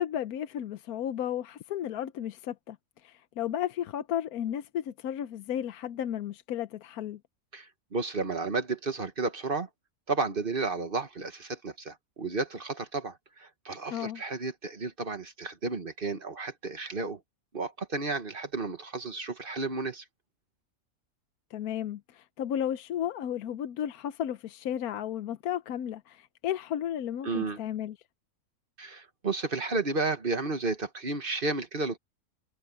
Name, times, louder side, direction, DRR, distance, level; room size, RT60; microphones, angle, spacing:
voice 1, 0.0-2.8 3.0-7.2 13.9-14.2 21.5-28.0, left 10 dB, 85° left, 1.2 m, -33 dB
voice 2, 7.5-9.7 10.1-17.2 17.5-20.0 27.2-27.6 28.8-32.0, right 3 dB, 40° right, 1.5 m, -32 dB
omnidirectional pair, 1.6 m